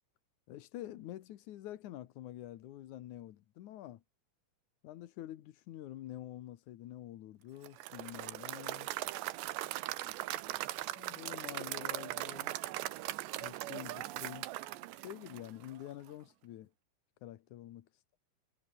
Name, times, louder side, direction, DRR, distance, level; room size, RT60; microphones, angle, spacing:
voice 1, 0.5-4.0 4.8-8.9 11.0-12.6 13.4-14.5 15.0-16.7 17.2-17.9, left 13 dB, 70° left, 1.9 m, -47 dB
Applause / Crowd, 7.6-15.8, right 16 dB, 85° right, 3.3 m, -40 dB
omnidirectional pair, 4.9 m